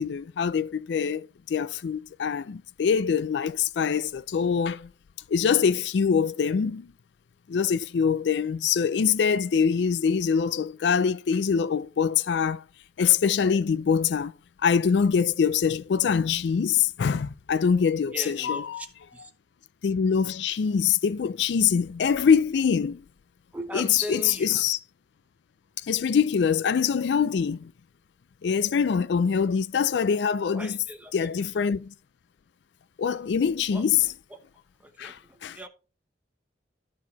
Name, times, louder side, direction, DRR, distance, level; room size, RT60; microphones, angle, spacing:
voice 1, 0.0-4.9 5.3-6.9 7.5-12.6 13.0-14.3 14.6-18.8 19.8-23.0 23.7-24.8 25.8-27.7 28.4-30.8 31.1-31.9 33.0-34.1 35.0-35.6, left 6 dB, 70° left, 0.4 m, -24 dB
voice 2, 18.1-18.9 19.1-19.3 23.5-24.6 30.5-31.4 33.7-33.8 34.3-34.4 34.8-35.7, right 1 dB, 10° right, 1.0 m, -39 dB
12.5 x 4.7 x 4.1 m
head